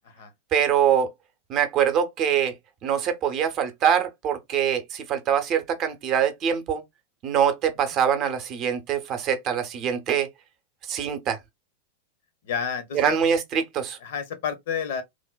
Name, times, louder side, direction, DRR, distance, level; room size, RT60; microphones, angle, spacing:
voice 1, 0.5-1.1 1.5-2.5 2.8-6.8 7.2-10.3 10.9-11.4 12.9-14.0, right 8 dB, 35° right, 0.6 m, -24 dB
voice 2, 12.4-13.2 14.0-15.0, left 7 dB, 55° left, 0.7 m, -30 dB
3.2 x 2.1 x 2.2 m
figure-of-eight pair, 90°, 0 cm